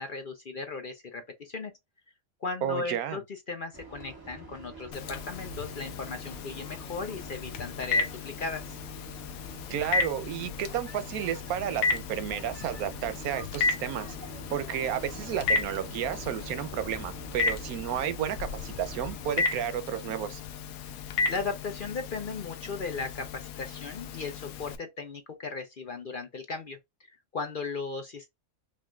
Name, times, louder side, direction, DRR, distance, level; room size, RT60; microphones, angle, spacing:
voice 1, 0.0-1.7 2.4-8.8 21.3-26.8 27.3-28.3, left 4 dB, 50° left, 0.6 m, -36 dB
voice 2, 2.6-3.2 9.7-14.1 14.5-20.4, right 10 dB, 90° right, 1.1 m, -32 dB
sound 1, 3.7-19.4, right 2 dB, 15° right, 1.3 m, -46 dB
Telephone, 4.9-24.8, left 4 dB, 85° left, 1.1 m, -34 dB
5.6 x 2.4 x 2.3 m
omnidirectional pair, 1.5 m